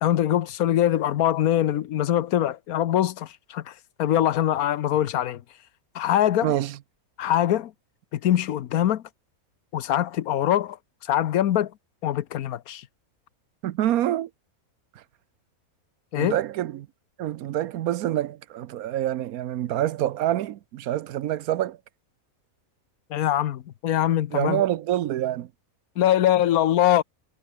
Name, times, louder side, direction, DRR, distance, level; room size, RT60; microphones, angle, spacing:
voice 1, 0.0-3.7 4.0-5.4 5.9-6.5 7.2-7.7 8.1-9.0 9.7-10.8 11.0-11.7 12.0-12.8 16.1-16.4 23.1-24.6 26.0-27.0, left 11 dB, 85° left, 1.3 m, -23 dB
voice 2, 6.4-6.8 13.6-14.3 16.1-16.9 17.2-21.8 24.3-25.5, right 12 dB, 90° right, 1.2 m, -26 dB
omnidirectional pair, 1.5 m